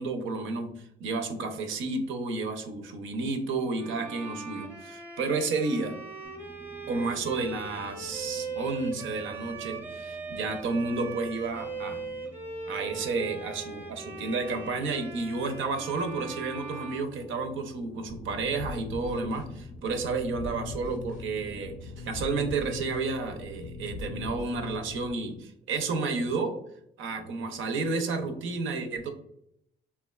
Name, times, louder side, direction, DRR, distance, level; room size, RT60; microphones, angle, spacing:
voice 1, 0.0-6.0 6.9-12.0 12.7-26.5 27.0-29.1, right 3 dB, 75° right, 5 dB, 0.6 m, -31 dB
Bowed string instrument, 3.8-17.8, right 4 dB, 10° right, 0.7 m, -40 dB
sound 1, 6.2-22.4, left 1 dB, 20° left, 0.3 m, -51 dB
sound 2, 18.1-25.1, left 3 dB, 75° left, 0.5 m, -40 dB
3.3 x 2.2 x 2.2 m, 0.73 s
cardioid pair, 90°, 20 cm